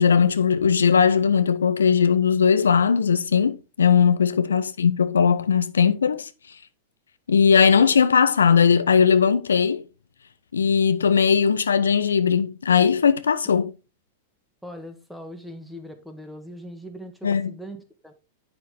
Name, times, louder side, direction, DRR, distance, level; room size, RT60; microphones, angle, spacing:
voice 1, 0.0-6.3 7.3-9.8 10.5-13.7 17.2-17.5, left 6 dB, 90° left, 0.5 m, -19 dB
voice 2, 14.6-18.1, equal, ahead, 1.6 m, -40 dB
8.5 x 5.9 x 3.4 m
hypercardioid pair, 105°, 0 cm